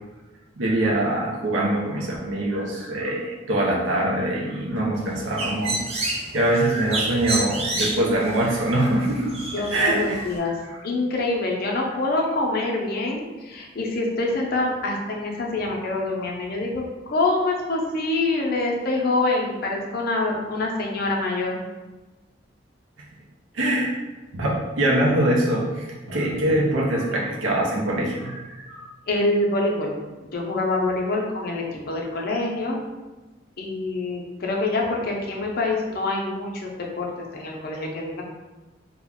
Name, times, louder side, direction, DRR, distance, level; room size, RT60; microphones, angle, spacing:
voice 1, 0.6-10.2 23.5-23.9 24.3-28.9, right 1 dB, 85° right, -3 dB, 0.5 m, -24 dB
Bird, 4.9-10.4, right 2 dB, 30° right, 0.4 m, -30 dB
voice 2, 9.5-10.5 10.8-21.6 29.1-30.0 30.3-32.8 33.6-36.7 37.0-37.1 37.3-38.2, left 2 dB, 50° left, -1 dB, 0.5 m, -25 dB
2.4 x 2.1 x 3.5 m, 1.2 s
head